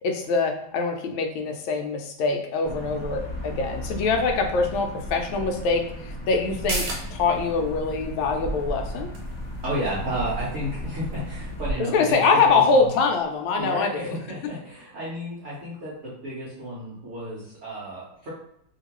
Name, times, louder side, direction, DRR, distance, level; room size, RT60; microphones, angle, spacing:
voice 1, 0.0-9.1 11.8-14.5, left 4 dB, 80° left, 3 dB, 1.4 m, -24 dB
sound 1, 2.6-11.7, equal, 50° left, 0.9 m, -35 dB
sound 2, 6.5-13.6 14.0-14.1, right 2 dB, 70° right, 1.5 m, -39 dB
voice 2, 9.6-12.2 12.4-12.9 13.6-18.3, right 1 dB, 50° right, -8 dB, 1.0 m, -32 dB
3.1 x 2.9 x 2.9 m, 0.77 s
omnidirectional pair, 2.2 m